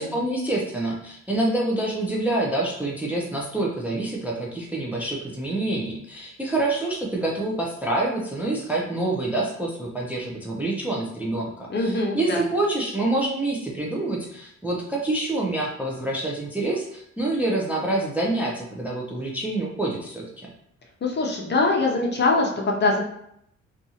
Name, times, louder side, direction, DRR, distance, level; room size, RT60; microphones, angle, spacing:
voice 1, 0.0-20.5, right 2 dB, 5° right, -3 dB, 0.4 m, -27 dB
voice 2, 11.7-12.4 21.0-23.0, left 3 dB, 35° left, 0 dB, 0.6 m, -23 dB
2.6 x 2.4 x 2.8 m, 0.73 s
cardioid pair, 90°, 30 cm